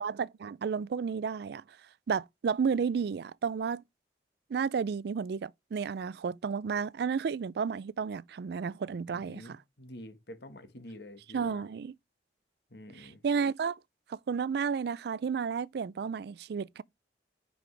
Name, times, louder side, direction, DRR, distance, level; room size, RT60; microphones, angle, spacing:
voice 1, 0.0-1.6 2.1-3.8 4.5-9.6 11.3-11.9 12.9-13.8 14.1-16.8, right 6 dB, 65° right, 0.4 m, -32 dB
voice 2, 9.1-11.7 12.7-13.2, left 1 dB, 70° left, 1.6 m, -48 dB
9.8 x 5.2 x 3.3 m
head